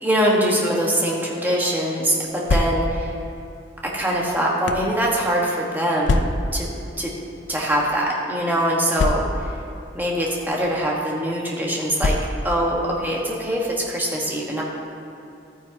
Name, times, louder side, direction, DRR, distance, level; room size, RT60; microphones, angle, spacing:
voice 1, 0.0-3.1 3.8-6.7 7.0-7.1 7.5-9.3 9.9-12.2 12.4-14.6, equal, 10° right, -3 dB, 1.5 m, -23 dB
sound 1, 2.4-3.1 3.9-4.9 6.0-6.6 7.5-7.7 7.9-8.0 8.9-9.6 10.5-10.7 12.0-12.6, left 2 dB, 80° left, 0.5 m, -24 dB
13.0 x 9.5 x 2.9 m, 2.8 s
head